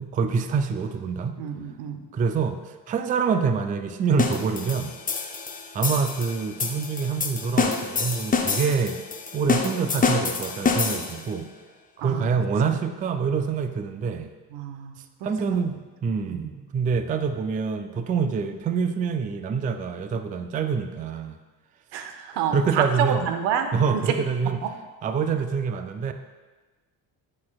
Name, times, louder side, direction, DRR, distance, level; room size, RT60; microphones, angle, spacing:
voice 1, 0.0-1.4 2.1-5.0 5.7-9.0 9.3-11.5 12.0-14.3 15.2-21.4 22.3-23.3 23.7-24.6 25.0-26.1, right 5 dB, 20° right, 8 dB, 0.3 m, -26 dB
voice 2, 1.4-2.0 12.0-12.3 14.5-15.4 16.2-16.4 21.9-23.7 24.6-24.7, right 8 dB, 80° right, 7 dB, 0.7 m, -29 dB
sound 1, 4.2-11.3, left 5 dB, 20° left, 0.6 m, -27 dB
9.5 x 4.2 x 2.3 m, 1.3 s
supercardioid pair, 75°, 42 cm